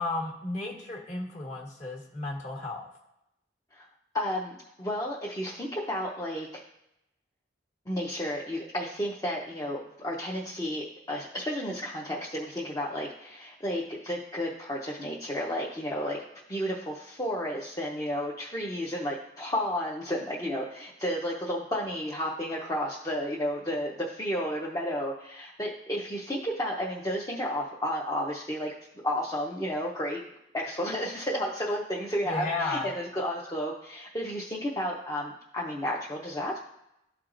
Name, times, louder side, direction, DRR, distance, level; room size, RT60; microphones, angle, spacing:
voice 1, 0.0-2.8 32.3-32.9, left 3 dB, 35° left, 0 dB, 1.4 m, -33 dB
voice 2, 4.1-6.6 7.9-16.2 16.5-28.7 29.0-30.2 30.5-36.6, equal, 15° left, -4 dB, 0.6 m, -32 dB
13.5 x 4.5 x 2.5 m, 0.85 s
head